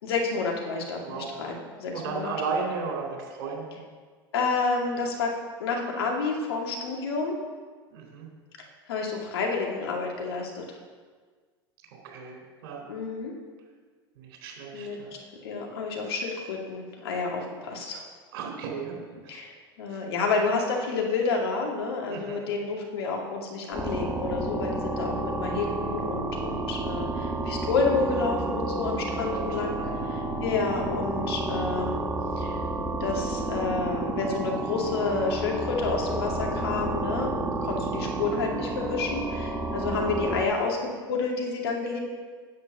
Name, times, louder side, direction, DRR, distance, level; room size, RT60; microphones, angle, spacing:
voice 1, 0.0-2.3 4.3-5.3 5.6-7.4 8.6-10.6 12.9-13.3 14.7-18.0 19.3-29.8 30.1-32.0 32.4-32.6 33.0-42.0, left 4 dB, 75° left, 0 dB, 2.4 m, -29 dB
voice 2, 1.0-1.4 1.9-3.9 7.9-8.3 12.0-12.4 12.6-12.8 14.2-15.2 18.3-19.4 19.9-20.0 22.1-22.4 29.1-30.2, right 5 dB, 65° right, 0 dB, 3.8 m, -35 dB
sound 1, 23.7-40.4, right 2 dB, 5° right, 1.7 m, -30 dB
9.7 x 7.7 x 6.0 m, 1.5 s
hypercardioid pair, 85°, 13 cm